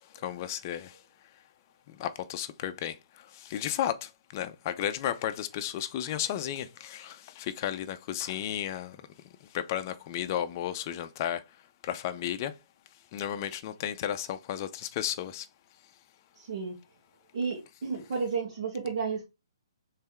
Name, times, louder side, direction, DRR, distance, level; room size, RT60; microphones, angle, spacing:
voice 1, 0.2-0.9 1.9-3.0 3.3-9.0 9.5-11.4 11.8-12.5 13.1-15.5, left 11 dB, 40° left, 0.5 m, -33 dB
voice 2, 16.4-16.8 17.3-19.2, right 5 dB, 60° right, 1.7 m, -32 dB
3.5 x 3.3 x 4.3 m
hypercardioid pair, 140°, 3 cm